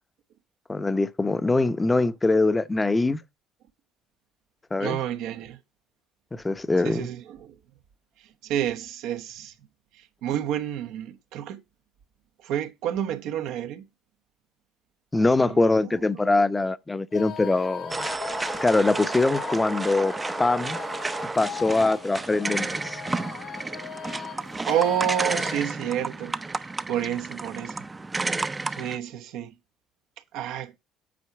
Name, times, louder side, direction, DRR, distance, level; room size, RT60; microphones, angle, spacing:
voice 1, 0.7-3.2 4.7-5.0 6.3-7.1 15.1-18.1 18.6-20.1 20.4-20.8 21.4-23.0, left 2 dB, 20° left, 0.7 m, -23 dB
voice 2, 4.8-5.6 6.8-7.6 8.2-9.5 9.9-11.6 12.4-13.8 15.2-16.0 24.7-27.8 28.7-29.5 30.3-30.8, right 10 dB, 70° right, 1.0 m, -30 dB
sound 1, 17.1-25.6, left 9 dB, 65° left, 1.7 m, -39 dB
sound 2, 17.9-29.0, right 3 dB, 20° right, 0.6 m, -31 dB
8.6 x 4.8 x 4.7 m
hypercardioid pair, 65°, 0 cm